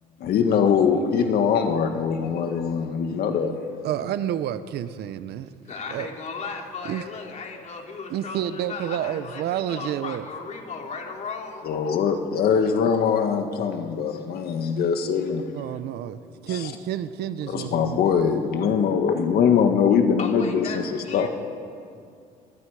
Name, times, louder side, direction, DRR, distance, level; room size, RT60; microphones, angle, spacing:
voice 1, 0.2-3.5 11.6-15.5 16.5-16.7 17.5-21.3, left 7 dB, 65° left, 6 dB, 1.6 m, -22 dB
voice 2, 3.8-5.5 5.9-6.1 6.8-7.0 8.1-10.2 15.5-18.0, right 11 dB, 75° right, 13 dB, 1.0 m, -29 dB
voice 3, 5.6-11.6 20.2-21.3, left 4 dB, 45° left, 0 dB, 3.7 m, -36 dB
26.0 x 21.0 x 5.0 m, 2.4 s
cardioid pair, 110°, 17 cm